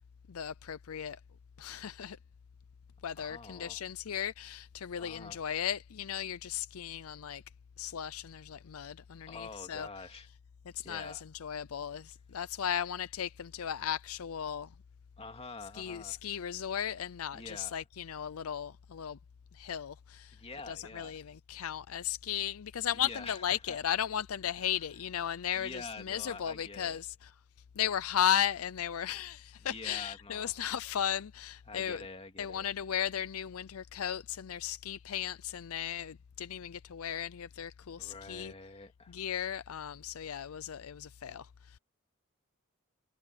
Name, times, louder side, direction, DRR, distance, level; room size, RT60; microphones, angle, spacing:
voice 1, 0.3-1.2 1.6-2.2 3.0-7.4 7.8-9.9 10.7-14.7 15.7-19.2 19.5-20.4 20.7-27.3 27.7-32.0 32.4-38.5 39.1-41.8, left 9 dB, 75° left, 0.5 m, -36 dB
voice 2, 3.2-3.8 5.0-5.4 9.3-10.3 10.8-11.2 15.2-16.2 17.3-17.7 20.3-21.2 22.9-23.8 24.6-24.7 25.6-27.0 29.7-30.5 31.7-32.7 38.0-39.2, left 3 dB, 30° left, 2.5 m, -46 dB
head